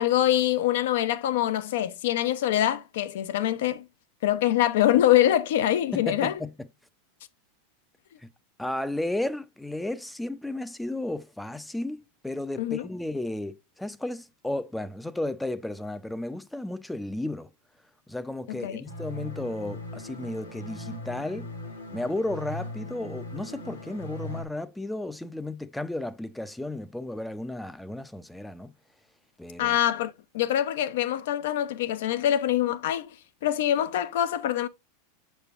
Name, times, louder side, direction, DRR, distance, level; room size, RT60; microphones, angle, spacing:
voice 1, 0.0-3.8 4.2-6.4 12.6-12.9 18.5-18.8 29.6-33.1 33.4-34.7, left 12 dB, 65° left, 0.6 m, -24 dB
voice 2, 5.9-6.7 8.2-8.3 8.6-17.5 18.1-21.5 21.9-28.7 29.4-29.8, left 1 dB, 5° left, 0.5 m, -33 dB
sound 1, 18.9-24.4, left 1 dB, 85° left, 1.5 m, -39 dB
6.6 x 6.3 x 2.4 m
hypercardioid pair, 95°, 0 cm